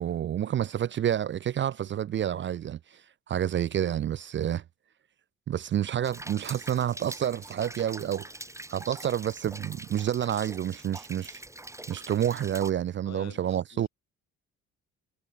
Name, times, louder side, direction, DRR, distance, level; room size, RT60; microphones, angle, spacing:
voice 1, 0.0-4.6 5.5-8.3 8.7-11.4 11.9-13.9, right 10 dB, 40° right, 0.5 m, -29 dB
Rain, 6.0-12.7, right 1 dB, 10° right, 2.1 m, -44 dB
voice 2, 13.0-13.9, left 10 dB, 60° left, 3.0 m, -48 dB
supercardioid pair, 70°, 31 cm